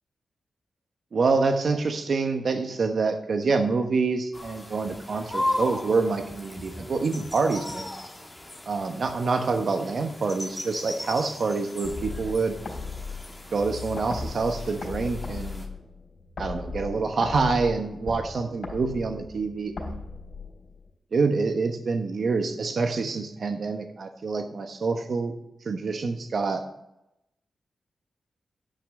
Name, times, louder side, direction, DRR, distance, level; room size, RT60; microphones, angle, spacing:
voice 1, 1.1-7.9 8.7-12.6 13.5-15.6 16.4-20.0 21.1-25.3 25.6-26.6, right 4 dB, 60° right, 5 dB, 1.1 m, -26 dB
sound 1, 4.3-15.7, left 1 dB, 10° left, 1.9 m, -37 dB
sound 2, 11.8-20.9, left 4 dB, 50° left, 3.7 m, -37 dB
10.5 x 6.1 x 6.5 m, 0.84 s
wide cardioid pair, 115°, 0 cm